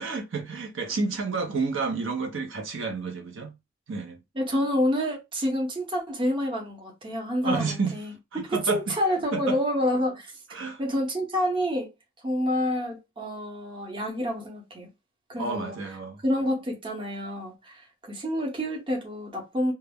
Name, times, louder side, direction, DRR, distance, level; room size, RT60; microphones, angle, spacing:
voice 1, 0.0-3.6 3.9-4.2 7.4-8.0 8.3-8.8 9.3-9.6 10.5-10.8 15.4-16.2, right 4 dB, 70° right, 0.6 m, -30 dB
voice 2, 4.3-11.9 12.2-14.9 15.3-15.8 16.2-19.7, equal, 25° right, 0.8 m, -28 dB
2.2 x 2.0 x 3.4 m
head